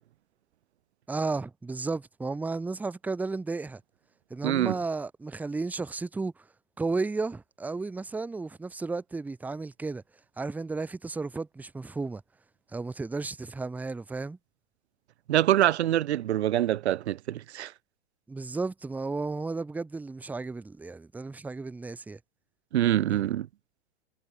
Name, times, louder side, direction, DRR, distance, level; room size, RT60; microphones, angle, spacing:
voice 1, 1.1-3.8 4.3-6.3 6.8-10.0 10.4-12.2 12.7-14.4 18.3-22.2, right 3 dB, 5° right, 0.8 m, -33 dB
voice 2, 4.4-4.7 15.3-17.7 22.7-23.5, right 12 dB, 85° right, 0.7 m, -25 dB
hypercardioid pair, 135°, 32 cm